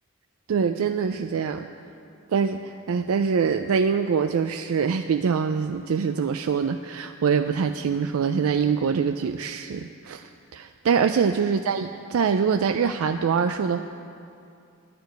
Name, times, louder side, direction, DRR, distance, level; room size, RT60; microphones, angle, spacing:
voice 1, 0.5-1.7 2.3-13.8, right 6 dB, 80° right, 8 dB, 0.4 m, -24 dB
10.5 x 6.8 x 9.3 m, 2.5 s
head